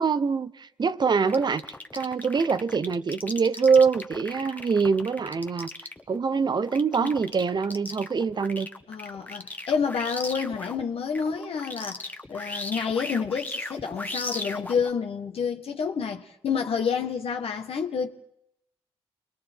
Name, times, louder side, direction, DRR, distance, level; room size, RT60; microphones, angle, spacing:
voice 1, 0.0-1.6 1.9-5.7 6.1-8.7, right 5 dB, 45° right, 0.9 m, -24 dB
sound 1, 1.3-10.8 11.1-14.9, left 2 dB, 15° left, 1.3 m, -37 dB
voice 2, 8.9-18.1, left 6 dB, 65° left, 1.4 m, -29 dB
29.0 x 22.0 x 4.5 m
supercardioid pair, 60°, 11 cm